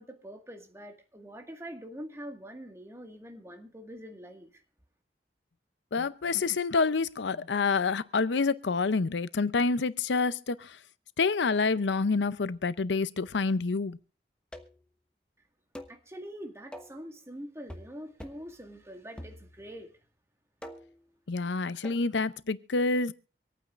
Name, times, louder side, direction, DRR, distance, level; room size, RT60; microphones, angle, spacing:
voice 1, 0.0-4.6 15.9-19.9, equal, 15° right, 1.9 m, -44 dB
voice 2, 5.9-10.8 11.2-14.0 21.3-23.1, left 4 dB, 85° left, 0.6 m, -28 dB
sound 1, 14.5-14.9 15.8-16.0 16.7-17.0 17.7-17.9 18.2-18.5 19.2-19.8 20.6-21.0 21.8-22.1, equal, 5° left, 1.1 m, -45 dB
26.0 x 9.2 x 2.5 m
head